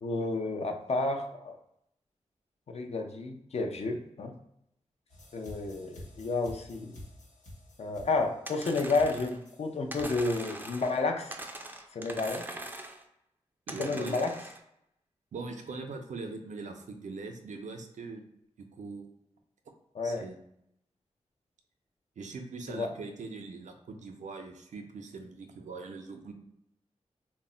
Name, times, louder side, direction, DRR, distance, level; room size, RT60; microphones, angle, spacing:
voice 1, 0.0-1.5 2.7-4.3 5.3-7.0 7.8-11.4 11.9-12.4 13.7-14.3 19.9-20.3 22.7-22.9, left 3 dB, 60° left, 3 dB, 0.4 m, -31 dB
sound 1, 5.1-10.3, left 1 dB, 80° left, 0.8 m, -49 dB
sound 2, 8.5-9.4 9.9-11.0 11.3-13.0 13.7-14.6, right 1 dB, 15° right, 0.4 m, -42 dB
voice 2, 13.7-14.4 15.3-18.2 18.6-19.1 20.0-20.4 22.2-26.3, right 4 dB, 80° right, 5 dB, 0.4 m, -41 dB
2.1 x 2.0 x 3.7 m, 0.77 s
cardioid pair, 60°, 12 cm